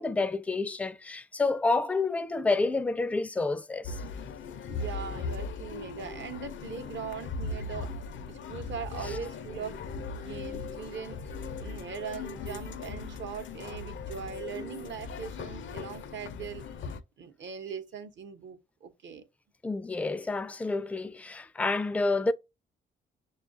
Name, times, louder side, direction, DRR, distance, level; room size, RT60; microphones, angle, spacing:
voice 1, 0.0-4.0 19.6-22.3, left 3 dB, 5° left, 0.3 m, -29 dB
sound 1, 3.8-17.0, left 4 dB, 70° left, 0.5 m, -39 dB
voice 2, 4.7-19.2, right 7 dB, 65° right, 0.9 m, -41 dB
6.3 x 2.4 x 2.5 m
cardioid pair, 70°, 21 cm